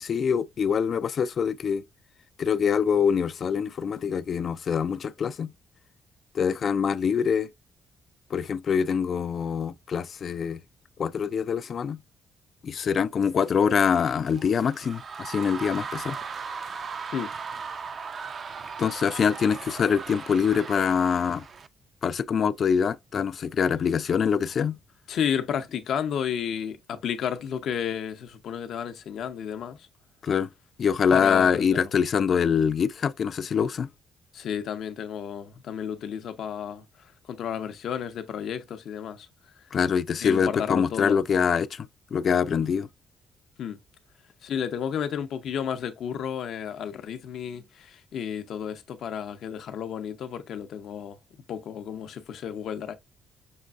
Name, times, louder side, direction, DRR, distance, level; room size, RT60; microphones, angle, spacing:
voice 1, 0.0-1.8 2.4-5.5 6.3-7.5 8.3-10.6 11.0-12.0 12.6-16.2 18.8-21.4 22.0-24.8 30.2-30.5 30.8-33.9 39.7-42.9, left 7 dB, 50° left, 0.3 m, -24 dB
sound 1, 13.4-21.7, right 5 dB, 45° right, 0.4 m, -38 dB
voice 2, 25.1-29.8 31.1-31.9 34.3-36.8 37.3-39.3 40.2-41.2 43.6-43.8 44.4-51.2 51.5-52.9, left 8 dB, 70° left, 0.7 m, -32 dB
6.4 x 2.5 x 2.4 m
cardioid pair, 90°, 0 cm